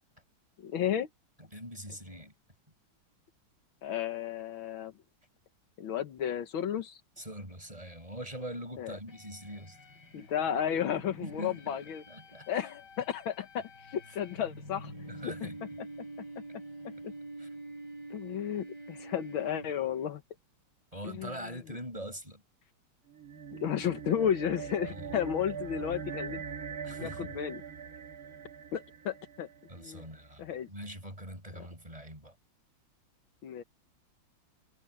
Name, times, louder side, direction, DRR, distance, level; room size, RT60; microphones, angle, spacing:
voice 1, 0.6-1.1 3.8-4.9 5.8-7.0 8.8-8.9 10.1-12.0 12.5-14.9 15.2-15.3 17.0-17.1 18.1-20.2 21.0-21.3 23.5-26.4 27.0-27.6 28.7-29.5 29.8-30.1 30.4-30.7 31.6-31.7 33.4-33.6, left 9 dB, 80° left, 1.9 m, -33 dB
voice 2, 1.4-2.3 7.2-9.8 11.2-12.5 15.1-15.8 17.4-17.6 20.9-22.4 24.8-25.2 26.8-27.3 29.7-32.3, equal, 15° right, 7.9 m, -43 dB
sound 1, 9.1-20.1, right 1 dB, 55° left, 7.3 m, -47 dB
sound 2, 23.1-29.8, right 6 dB, 50° right, 1.9 m, -42 dB
omnidirectional pair, 2.2 m